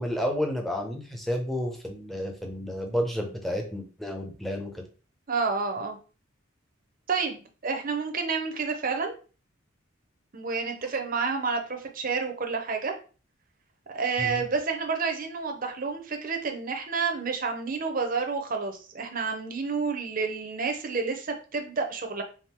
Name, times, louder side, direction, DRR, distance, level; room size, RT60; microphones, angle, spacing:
voice 1, 0.0-4.8 14.2-14.4, equal, ahead, 2 dB, 0.7 m, -31 dB
voice 2, 5.3-6.0 7.1-9.1 10.3-12.9 13.9-22.2, right 4 dB, 45° right, 4 dB, 0.7 m, -29 dB
3.6 x 2.6 x 4.3 m, 0.36 s
head